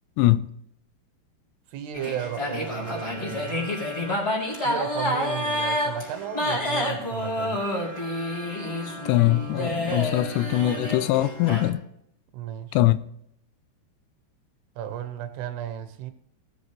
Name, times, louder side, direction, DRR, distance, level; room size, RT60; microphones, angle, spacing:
voice 1, 1.7-3.7 4.6-7.6 12.3-12.8 14.8-16.1, right 10 dB, 75° right, 3.0 m, -34 dB
sound 1, 1.9-11.7, left 1 dB, 15° left, 4.0 m, -29 dB
voice 2, 9.1-11.8 12.7-13.0, left 15 dB, 85° left, 2.8 m, -22 dB
19.0 x 7.6 x 3.2 m
omnidirectional pair, 4.9 m